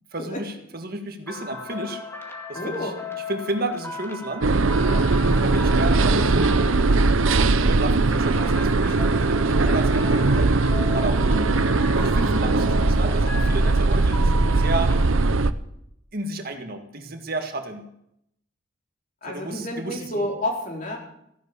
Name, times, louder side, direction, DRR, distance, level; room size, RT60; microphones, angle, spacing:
voice 1, 0.1-2.0 2.5-2.9 3.3-4.5 5.4-6.5 6.9-11.5 11.9-15.0 16.1-17.9 19.3-20.3, right 2 dB, 50° right, 5 dB, 1.8 m, -32 dB
sound 1, 1.3-15.0, left 2 dB, 10° left, 2.0 m, -37 dB
voice 2, 2.5-3.0 4.8-5.1 5.5-6.0 9.6-9.8 11.3-11.5 11.9-12.2 19.2-21.0, left 1 dB, 40° left, 0 dB, 4.3 m, -31 dB
sound 2, 4.4-15.5, right 3 dB, 80° right, 0.8 m, -20 dB
15.5 x 12.0 x 7.0 m, 0.75 s
head